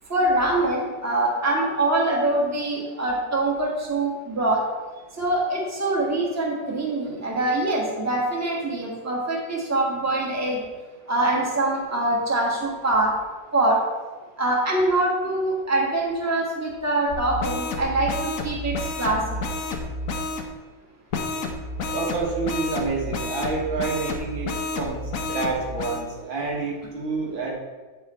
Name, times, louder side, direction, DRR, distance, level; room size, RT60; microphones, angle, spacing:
voice 1, 0.1-4.6 5.2-10.6 11.1-13.1 13.5-13.8 14.4-19.2, right 2 dB, 10° right, -3 dB, 1.4 m, -24 dB
sound 1, 17.1-20.5 21.1-26.0, left 2 dB, 55° left, 1.1 m, -30 dB
voice 2, 21.9-25.0 25.3-27.5, right 4 dB, 80° right, -2 dB, 2.2 m, -28 dB
8.8 x 5.5 x 4.3 m, 1.3 s
omnidirectional pair, 2.1 m